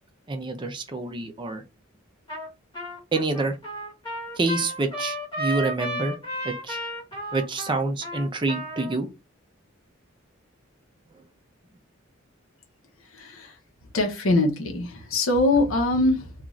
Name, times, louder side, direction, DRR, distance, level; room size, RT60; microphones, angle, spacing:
voice 1, 0.3-1.6 3.1-3.6 4.4-6.2 6.4-6.8 7.3-9.1, right 3 dB, 25° right, 0.5 m, -27 dB
Trumpet, 2.3-2.5 2.7-9.0, equal, 25° left, 1.0 m, -33 dB
voice 2, 13.1-13.6 13.9-16.3, left 2 dB, 80° left, 0.8 m, -23 dB
2.5 x 2.4 x 3.1 m
head